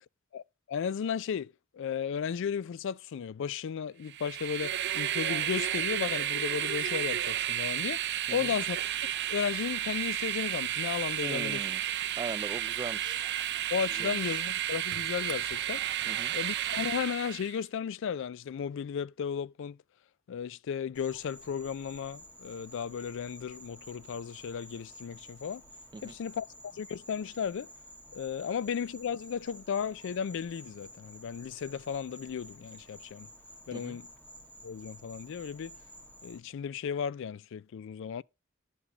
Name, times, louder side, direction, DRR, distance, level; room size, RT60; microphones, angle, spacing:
voice 1, 0.7-8.0 8.3-8.8 9.3-11.7 13.7-15.8 16.3-19.8 20.3-25.6 26.0-27.7 28.1-33.3 33.7-34.1 34.6-35.7 36.2-38.2, left 7 dB, 65° left, 0.3 m, -35 dB
Train, 4.1-17.6, right 12 dB, 60° right, 0.6 m, -32 dB
voice 2, 11.2-11.8 12.2-13.2 13.9-14.4 16.1-16.3 25.9-26.1 33.7-34.0, right 4 dB, 20° right, 0.3 m, -40 dB
Insect, 20.9-36.4, equal, 10° left, 1.9 m, -52 dB
11.0 x 5.9 x 2.9 m
head